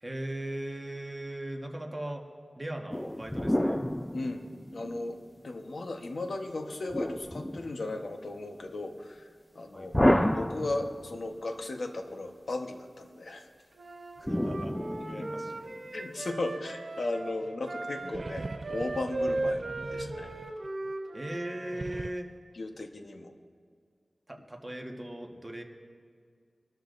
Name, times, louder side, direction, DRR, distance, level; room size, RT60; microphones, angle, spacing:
voice 1, 0.0-2.2 2.6-3.8 9.7-9.9 14.2-15.7 21.1-22.3 24.3-25.6, right 1 dB, 25° right, 2 dB, 1.4 m, -38 dB
sound 1, 2.9-5.2 6.9-8.1 9.9-11.3 14.3-15.7, left 1 dB, 10° left, 0.5 m, -29 dB
voice 2, 4.1-4.4 4.7-9.2 9.5-9.9 10.3-13.5 15.0-15.5 15.9-19.6 19.9-20.3 22.5-23.3, left 2 dB, 75° left, 4 dB, 1.2 m, -36 dB
Wind instrument woodwind instrument, 13.8-21.8, right 2 dB, 80° right, 1.3 m, -37 dB
many monsters, 18.0-20.9 21.6-22.1, right 2 dB, 50° right, 0.4 m, -41 dB
24.5 x 13.0 x 2.6 m, 2.1 s
wide cardioid pair, 70°, 0 cm